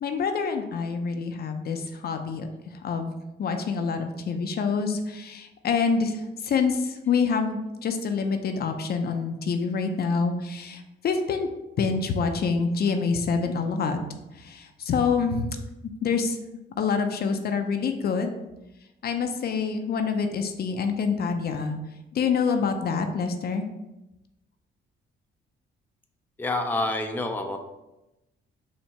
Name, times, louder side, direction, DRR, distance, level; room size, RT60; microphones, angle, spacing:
voice 1, 0.0-3.1 3.4-11.5 11.8-14.0 14.3-15.5 16.0-16.4 16.8-18.3 19.0-21.7 22.1-23.6, left 5 dB, 55° left, 6 dB, 0.6 m, -26 dB
voice 2, 26.4-27.6, left 2 dB, 10° left, 3 dB, 0.5 m, -27 dB
4.4 x 2.8 x 4.3 m, 0.95 s
cardioid pair, 90°, 20 cm